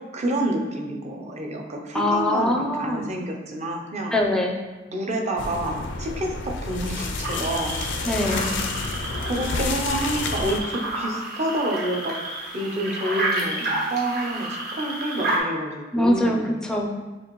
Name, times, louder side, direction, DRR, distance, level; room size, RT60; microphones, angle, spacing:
voice 1, 0.1-2.5 2.8-4.1 4.9-7.8 9.2-12.2 12.5-16.5, right 1 dB, 35° right, 0 dB, 0.6 m, -28 dB
voice 2, 1.9-3.1 4.1-4.6 8.1-8.6 15.9-16.9, left 1 dB, 5° left, 1 dB, 0.4 m, -23 dB
sound 1, 5.4-10.6, left 3 dB, 70° left, 0.4 m, -30 dB
sound 2, 7.2-15.4, right 2 dB, 55° right, 1.2 m, -30 dB
6.6 x 2.5 x 3.0 m, 1.2 s
head